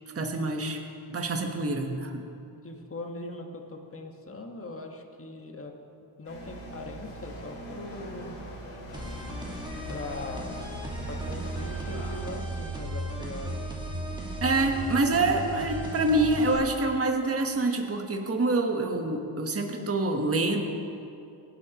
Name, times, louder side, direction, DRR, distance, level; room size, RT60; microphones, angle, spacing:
voice 1, 0.1-0.8 1.1-2.2 14.4-20.6, right 2 dB, 30° right, 3 dB, 1.3 m, -26 dB
voice 2, 2.6-5.8 6.2-8.4 9.9-10.6 11.0-13.6, left 2 dB, 25° left, 3 dB, 1.5 m, -40 dB
sound 1, 6.2-12.3, right 1 dB, 90° left, 3.0 m, -42 dB
sound 2, 8.9-16.5, right 1 dB, 10° right, 2.0 m, -35 dB
18.0 x 11.5 x 3.0 m, 2.6 s
cardioid pair, 65°, 50 cm